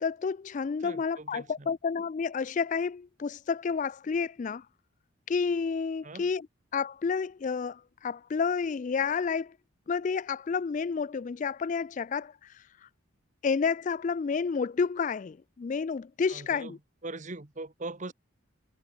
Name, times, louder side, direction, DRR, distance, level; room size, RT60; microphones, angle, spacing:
voice 1, 0.0-4.6 5.3-6.5 6.7-9.5 9.9-12.6 13.4-16.8, left 5 dB, 35° left, 0.3 m, -30 dB
voice 2, 0.8-1.7 6.0-6.3 16.3-16.7 17.0-18.1, right 2 dB, 35° right, 1.2 m, -41 dB
head